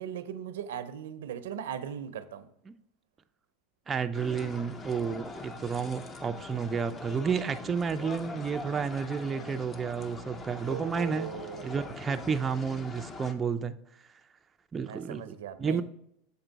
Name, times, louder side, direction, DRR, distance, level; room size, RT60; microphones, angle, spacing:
voice 1, 0.0-2.5 10.6-11.9 14.8-15.8, right 9 dB, 85° right, 12 dB, 0.5 m, -39 dB
voice 2, 3.9-11.3 11.6-13.8 14.7-15.8, right 6 dB, 20° right, 8 dB, 0.3 m, -31 dB
sound 1, 4.1-13.3, left 3 dB, 25° left, 0.6 m, -43 dB
6.9 x 4.4 x 3.9 m, 0.75 s
supercardioid pair, 120°, 0 cm